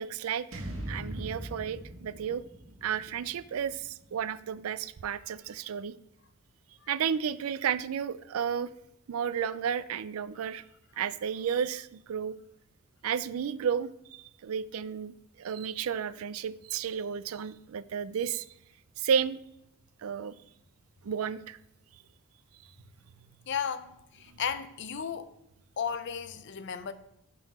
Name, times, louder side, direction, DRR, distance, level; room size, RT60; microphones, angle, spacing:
voice 1, 0.0-2.4 2.8-6.0 6.9-8.7 9.1-10.6 11.0-12.4 13.0-18.5 19.0-19.4 20.0-20.3 21.0-21.6, right 7 dB, 90° right, 0.4 m, -32 dB
sound 1, 0.5-4.7, right 1 dB, 70° right, 1.6 m, -42 dB
voice 2, 23.5-25.3 25.8-26.9, left 7 dB, 55° left, 0.5 m, -34 dB
10.5 x 3.9 x 4.1 m
head